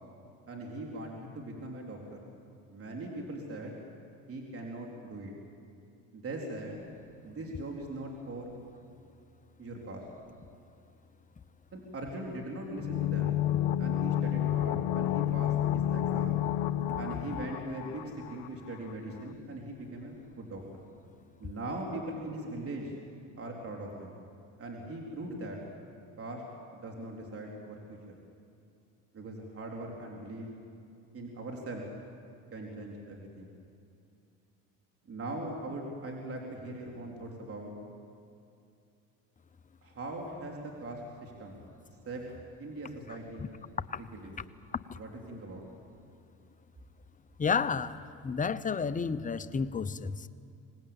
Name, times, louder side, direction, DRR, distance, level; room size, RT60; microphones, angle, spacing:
voice 1, 0.5-2.2 2.7-3.8 4.3-5.3 6.1-6.9 7.2-8.5 9.6-10.0 11.7-13.3 13.8-16.5 17.0-20.8 21.4-22.9 23.4-24.1 24.6-25.6 26.2-26.4 26.7-28.0 29.1-30.5 31.1-31.8 32.5-33.5 35.0-37.7 39.8-41.6 42.1-42.2 42.6-43.5 43.9-44.4 44.9-45.7, right 1 dB, 40° right, 4.0 m, -40 dB
sound 1, 12.8-18.5 18.7-18.8, left 11 dB, 85° left, 0.8 m, -30 dB
voice 2, 47.4-50.3, left 5 dB, 20° left, 0.8 m, -31 dB
25.0 x 19.0 x 9.0 m
supercardioid pair, 95°, 36 cm